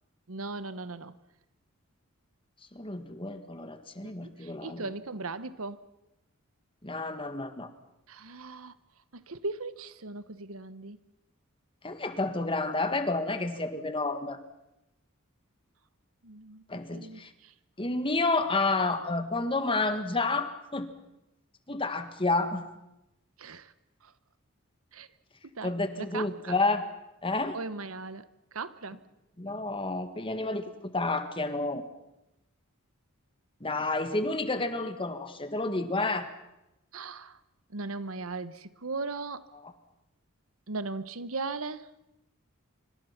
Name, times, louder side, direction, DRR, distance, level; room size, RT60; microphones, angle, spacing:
voice 1, 0.3-1.2 4.0-5.8 8.1-8.7 9.1-11.0 16.2-16.6 16.9-17.5 23.4-23.7 24.0-24.1 24.9-25.1 25.4-26.6 27.5-29.0 36.9-37.4 37.7-39.5 40.7-41.9, right 3 dB, 80° right, 14 dB, 1.2 m, -38 dB
voice 2, 2.7-4.9 6.8-7.7 11.8-14.4 16.7-17.3 17.8-20.9 21.7-22.7 25.6-26.9 27.2-27.6 29.4-31.8 33.6-36.3 39.6-39.7, left 3 dB, 25° left, 9 dB, 1.7 m, -30 dB
26.0 x 25.0 x 5.9 m, 0.91 s
head